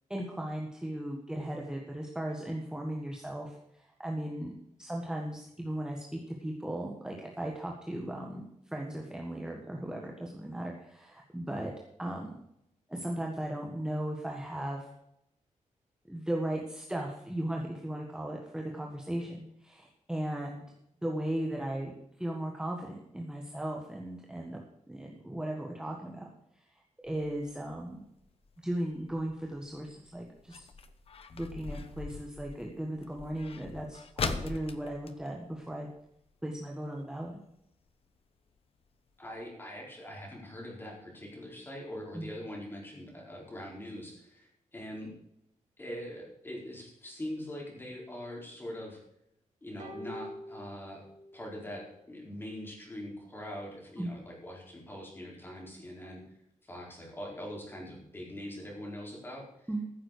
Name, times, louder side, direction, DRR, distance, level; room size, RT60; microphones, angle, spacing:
voice 1, 0.1-4.5 4.8-11.7 12.0-12.3 12.9-14.9 16.1-20.6 21.0-21.9 22.2-24.6 24.9-26.3 26.5-26.6 27.0-28.0 28.6-30.6 31.3-35.9 36.4-37.4 42.1-42.3 54.0-54.1 59.7-59.8, right 1 dB, 5° right, -1 dB, 1.6 m, -37 dB
sound 1, 27.1-36.3 36.6-36.7 37.0-37.4 37.9-38.0 38.5-38.6 38.9-39.0 39.3-39.4, left 5 dB, 50° left, 1.0 m, -41 dB
voice 2, 39.2-45.2 45.8-49.0 49.6-51.0 51.3-56.2 56.6-59.7, left 1 dB, 15° left, -2 dB, 4.4 m, -42 dB
sound 2, 49.8-51.4 51.7-51.8, equal, 75° right, 2.6 m, -45 dB
14.5 x 7.4 x 6.7 m, 0.79 s
wide cardioid pair, 180°, 13 cm